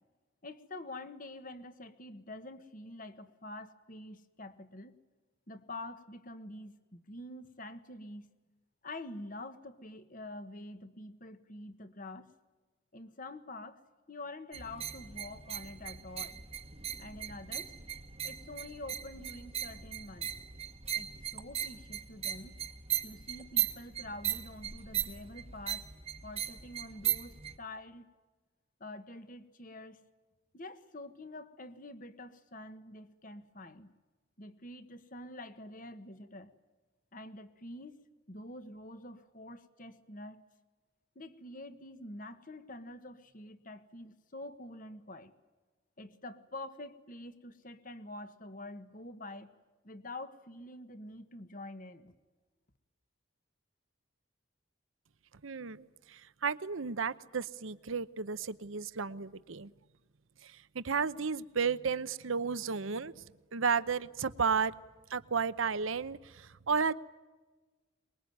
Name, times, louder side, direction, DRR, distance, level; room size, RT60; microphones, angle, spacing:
voice 1, 0.4-5.0 5.5-8.3 8.8-12.3 12.9-13.8 14.1-16.4 17.0-17.7 18.2-20.3 20.9-22.6 23.0-25.9 26.2-28.1 28.8-30.0 30.5-33.9 34.4-36.5 37.1-38.0 38.3-40.4 41.1-45.3 46.0-49.5 49.8-52.1, left 2 dB, 40° left, 11 dB, 1.4 m, -46 dB
sound 1, 14.5-27.6, right 10 dB, 30° right, 1.1 m, -38 dB
voice 2, 55.4-59.7 60.4-63.2 63.5-64.7 65.1-66.9, right 5 dB, 75° right, 15 dB, 0.8 m, -33 dB
24.0 x 21.5 x 9.4 m, 1.3 s
head